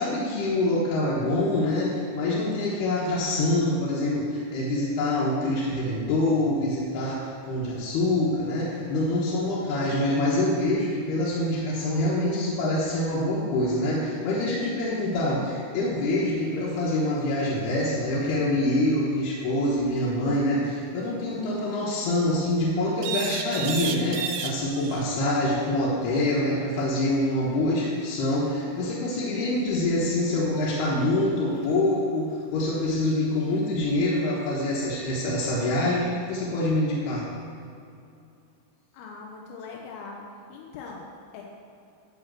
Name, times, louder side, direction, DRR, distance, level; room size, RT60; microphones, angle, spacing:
voice 1, 0.0-37.3, left 1 dB, 70° left, -8 dB, 2.7 m, -25 dB
sound 1, 16.4-16.5 16.7-17.3 23.0-25.1 27.9-28.0 31.7-31.8, right 7 dB, 85° right, 2.7 m, -32 dB
voice 2, 38.9-41.4, left 4 dB, 90° left, -1 dB, 3.5 m, -41 dB
11.5 x 4.4 x 7.4 m, 2.6 s
omnidirectional pair, 5.8 m